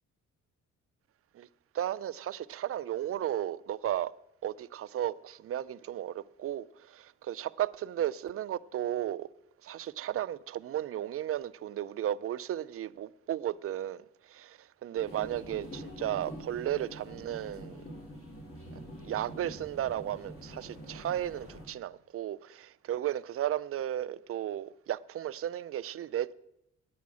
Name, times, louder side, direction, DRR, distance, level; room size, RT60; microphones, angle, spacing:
voice 1, 1.7-4.1 4.4-9.3 9.6-17.8 18.7-26.3, right 11 dB, 50° right, 0.5 m, -34 dB
sound 1, 14.9-21.7, equal, 45° left, 4.0 m, -45 dB
9.4 x 9.4 x 6.2 m
cardioid pair, 90°, 30 cm